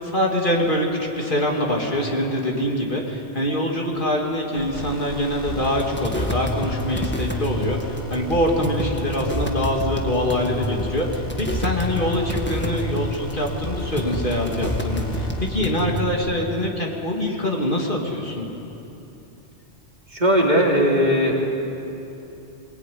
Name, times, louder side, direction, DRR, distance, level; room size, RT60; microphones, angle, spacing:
voice 1, 0.0-18.5, left 1 dB, 45° left, 0 dB, 3.0 m, -24 dB
sound 1, 4.6-16.2, left 1 dB, 90° left, 2.8 m, -38 dB
sound 2, 5.5-16.1, equal, 10° left, 1.9 m, -28 dB
voice 2, 20.1-21.5, equal, 40° right, -1 dB, 3.2 m, -19 dB
22.5 x 21.0 x 9.5 m, 2.9 s
omnidirectional pair, 1.2 m